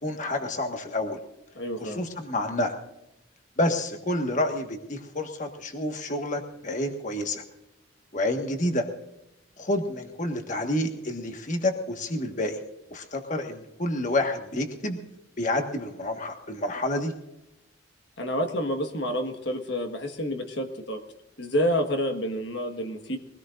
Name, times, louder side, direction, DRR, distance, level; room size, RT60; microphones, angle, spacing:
voice 1, 0.0-1.2 1.8-2.7 3.6-7.4 8.1-8.9 9.6-12.6 12.9-15.0 15.4-17.1, left 1 dB, 40° left, 4 dB, 1.6 m, -29 dB
voice 2, 1.5-2.0 18.2-21.0 21.4-23.2, equal, 55° left, 5 dB, 1.6 m, -28 dB
23.0 x 18.0 x 2.6 m, 0.86 s
head